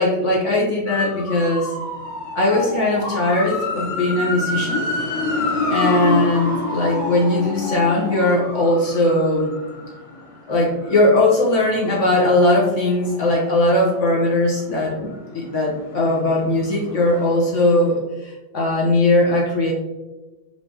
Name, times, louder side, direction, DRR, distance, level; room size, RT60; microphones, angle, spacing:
voice 1, 0.0-1.7 2.3-4.9 5.7-9.6 10.5-19.7, left 2 dB, 55° left, -3 dB, 0.8 m, -19 dB
sound 1, 0.9-14.6 15.0-17.6 17.8-17.9, left 2 dB, 90° left, 1.9 m, -28 dB
4.7 x 3.2 x 2.6 m, 1.1 s
omnidirectional pair, 2.1 m